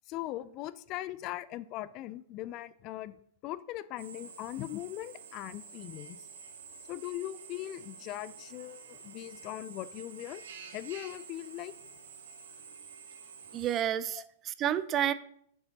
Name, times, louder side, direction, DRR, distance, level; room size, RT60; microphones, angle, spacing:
voice 1, 0.1-3.2 3.4-6.3 6.9-10.4 10.7-11.7 14.1-14.2, left 14 dB, 40° left, 16 dB, 0.3 m, -40 dB
Drill, 4.0-13.8, right 5 dB, 75° right, 1.1 m, -49 dB
voice 2, 13.5-15.1, right 10 dB, 30° right, 14 dB, 0.4 m, -30 dB
7.0 x 6.8 x 2.9 m, 0.67 s
hypercardioid pair, 120°, 0 cm